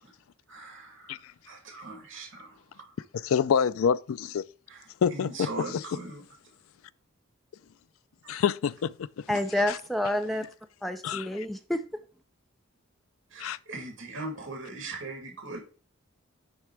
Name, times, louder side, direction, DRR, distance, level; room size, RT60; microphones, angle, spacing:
voice 1, 0.5-2.9 4.7-6.2 8.2-8.5 13.3-15.6, right 2 dB, 65° right, 2.2 m, -40 dB
voice 2, 3.1-4.4 5.0-5.8 8.3-9.4 9.7-9.8 11.0-11.5 13.4-13.6, left 7 dB, 80° left, 0.4 m, -27 dB
voice 3, 9.3-10.5 10.8-11.8, left 1 dB, ahead, 0.5 m, -28 dB
9.5 x 3.3 x 4.6 m
head